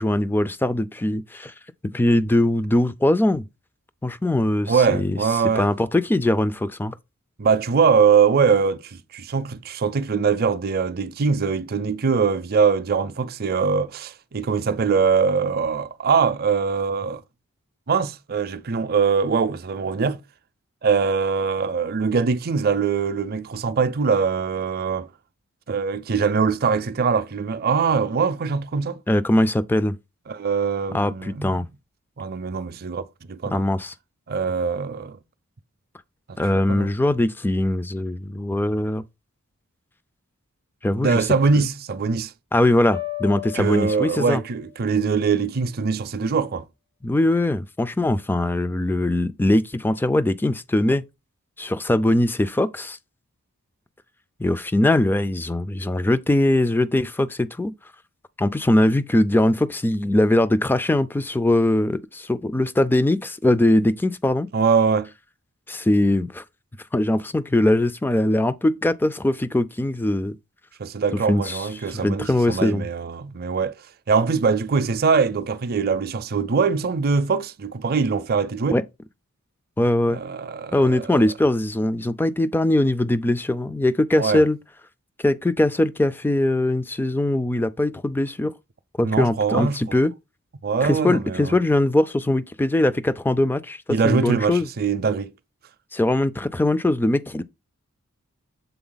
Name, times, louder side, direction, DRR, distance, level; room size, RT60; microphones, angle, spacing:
voice 1, 0.0-1.5 1.9-3.4 4.0-5.2 5.6-6.9 29.1-30.0 30.9-31.7 33.5-33.9 36.4-39.0 40.8-41.3 42.5-44.4 47.0-51.0 51.6-53.0 54.4-57.7 58.4-64.5 65.7-66.4 66.9-70.4 71.3-72.9 78.7-78.8 79.8-80.2 80.7-84.6 85.2-88.5 89.0-90.1 90.8-94.7 95.9-97.4, left 1 dB, 10° left, 0.3 m, -21 dB
voice 2, 4.7-5.7 7.4-17.2 17.9-20.2 20.8-25.1 25.7-29.0 30.3-31.6 32.2-33.6 34.3-35.2 36.3-36.9 40.9-42.3 43.5-46.6 64.5-65.1 70.8-73.7 74.1-78.8 80.1-81.2 84.2-84.4 89.0-90.0 90.6-91.6 93.9-95.3, right 5 dB, 45° right, 0.5 m, -22 dB
sound 1, 42.9-44.8, left 15 dB, 50° left, 0.6 m, -35 dB
7.0 x 4.0 x 3.9 m
head